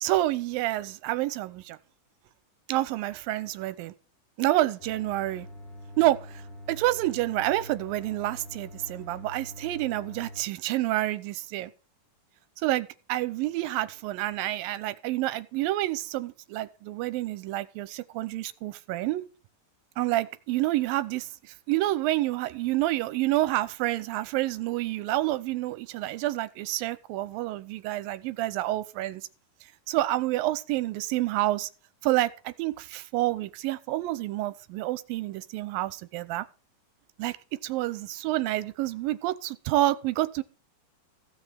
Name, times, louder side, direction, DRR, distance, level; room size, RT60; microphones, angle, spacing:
voice 1, 0.0-1.8 2.7-3.9 4.4-5.5 6.0-6.4 6.7-11.7 12.6-19.2 20.0-29.3 29.9-31.7 32.0-36.5 37.2-37.4 37.6-40.4, right 16 dB, 85° right, 2.5 m, -28 dB
sound 1, 4.8-10.4, left 1 dB, 60° left, 7.2 m, -45 dB
15.5 x 5.5 x 7.5 m
omnidirectional pair, 4.1 m